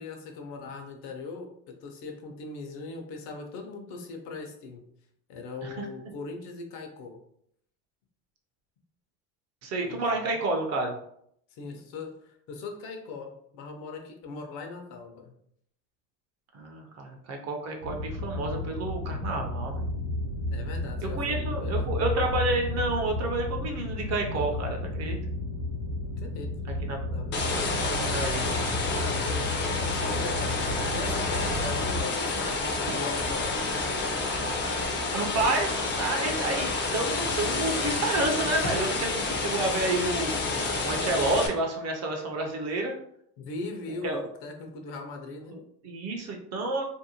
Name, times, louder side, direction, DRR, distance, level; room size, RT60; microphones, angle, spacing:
voice 1, 0.0-4.8 5.3-7.2 9.8-10.4 11.5-15.3 20.5-21.9 26.2-26.6 27.1-27.4 29.0-33.5 43.4-45.5, left 4 dB, 60° left, 3 dB, 0.7 m, -40 dB
voice 2, 9.6-11.0 16.5-19.8 21.1-25.2 26.9-27.0 27.7-28.5 35.1-40.6 40.8-43.0 44.0-44.2 45.5-46.8, right 2 dB, 35° right, 2 dB, 0.5 m, -30 dB
sound 1, 17.8-32.1, left 1 dB, 70° right, 1.0 m, -32 dB
sound 2, 27.3-41.5, left 3 dB, 25° left, 0.5 m, -29 dB
2.6 x 2.1 x 2.8 m, 0.69 s
supercardioid pair, 110°, 46 cm